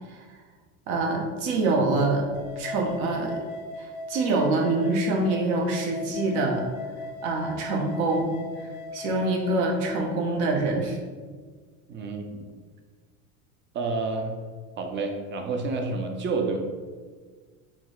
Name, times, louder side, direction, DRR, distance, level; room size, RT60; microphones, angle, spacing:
voice 1, 0.9-2.3 2.6-3.4 3.8-6.7 7.2-8.3 8.9-11.0, right 2 dB, 65° right, 1 dB, 0.9 m, -25 dB
sound 1, 2.3-10.0, left 3 dB, 80° left, 0.8 m, -38 dB
voice 2, 11.9-12.5 13.7-14.3 14.8-16.6, right 3 dB, 25° right, 3 dB, 0.4 m, -29 dB
5.8 x 2.1 x 2.3 m, 1.5 s
hypercardioid pair, 90°, 44 cm